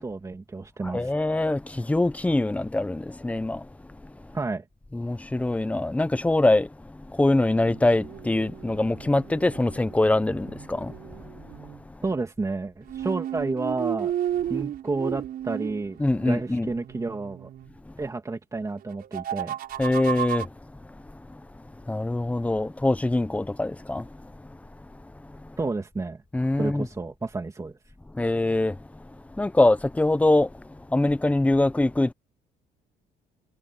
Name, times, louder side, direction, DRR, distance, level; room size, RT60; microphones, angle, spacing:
voice 1, 0.0-1.1 4.3-4.6 12.0-14.1 14.5-17.5 18.0-19.5 25.6-26.2 26.6-27.8, right 3 dB, 20° right, 2.7 m, -30 dB
voice 2, 0.8-3.7 4.9-11.0 16.0-16.7 19.8-20.5 21.9-24.3 26.3-26.9 28.1-28.8 29.4-30.5 30.9-32.1, left 2 dB, 10° left, 0.9 m, -23 dB
sound 1, 7.5-11.8 12.9-17.7 18.9-20.5, right 11 dB, 60° right, 6.2 m, -34 dB
cardioid pair, 110°, 17 cm